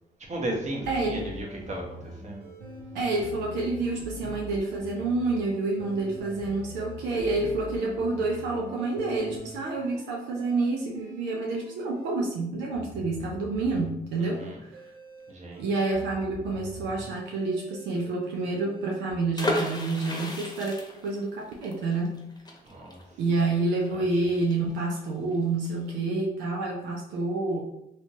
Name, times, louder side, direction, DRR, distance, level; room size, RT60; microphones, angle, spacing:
voice 1, 0.3-1.8 2.2-2.5 14.2-14.6 15.3-15.6 22.6-23.0 23.9-24.0, right 1 dB, 40° right, -1 dB, 1.1 m, -35 dB
sound 1, 0.6-12.1 12.7-19.2, left 1 dB, 65° right, 0.9 m, -43 dB
voice 2, 0.9-1.2 2.9-14.8 15.6-22.2 23.2-27.6, right 3 dB, 85° right, -1 dB, 0.6 m, -28 dB
sound 2, 19.3-25.0 25.3-25.4 25.6-25.9, left 1 dB, 20° left, 0.9 m, -34 dB
3.2 x 2.9 x 2.7 m, 0.80 s
supercardioid pair, 60°, 18 cm